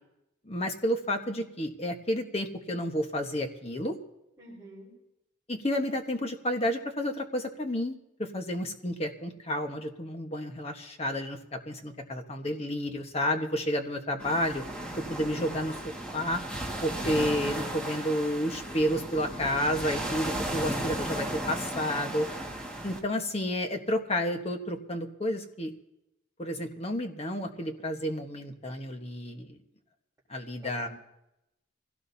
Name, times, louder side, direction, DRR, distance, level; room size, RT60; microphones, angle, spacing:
voice 1, 0.4-4.0 5.5-11.4 11.7-14.6 15.1-15.8 16.1-16.4 16.8-22.3 22.8-25.7 26.4-29.6 30.3-30.9, equal, 30° left, 4 dB, 1.2 m, -31 dB
voice 2, 4.4-4.9 30.6-30.9, right 1 dB, 10° right, -9 dB, 4.9 m, -48 dB
sound 1, 14.2-23.0, right 1 dB, 5° left, 1.8 m, -35 dB
24.5 x 17.0 x 2.8 m, 0.87 s
head